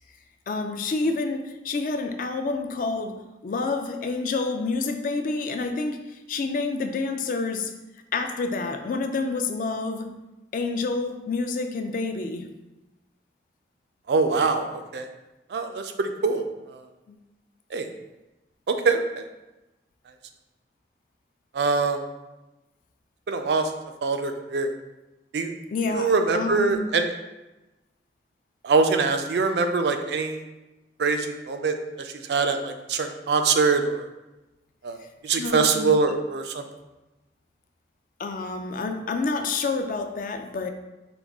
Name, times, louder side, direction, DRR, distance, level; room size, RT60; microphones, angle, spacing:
voice 1, 0.5-3.2 3.4-6.0 6.3-7.7 8.1-10.1 10.5-12.5 17.1-17.2 25.7-26.9 35.3-36.0 38.2-40.7, left 3 dB, 50° left, 7 dB, 0.3 m, -28 dB
voice 2, 14.1-15.1 15.5-16.5 17.7-17.9 18.7-19.2 21.5-22.0 23.3-23.7 24.0-24.7 25.3-25.5 25.9-27.1 28.6-30.4 31.0-34.1 34.8-35.0 35.2-36.6, right 4 dB, 70° right, 6 dB, 0.4 m, -24 dB
4.9 x 2.3 x 3.5 m, 1.0 s
head